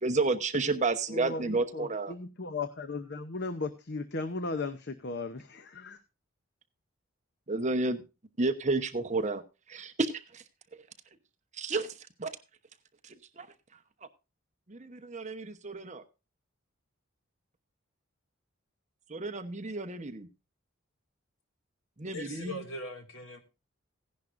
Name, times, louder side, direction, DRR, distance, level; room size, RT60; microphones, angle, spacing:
voice 1, 0.0-2.1 7.5-8.0 8.4-9.4 9.7-10.4 11.6-12.3 13.0-13.5 14.7-16.0 19.1-20.3 22.0-22.6, right 3 dB, 35° right, 0.9 m, -31 dB
voice 2, 1.1-6.0, left 3 dB, 50° left, 0.7 m, -36 dB
voice 3, 22.1-23.4, left 1 dB, 70° left, 2.3 m, -40 dB
16.0 x 10.5 x 2.6 m
head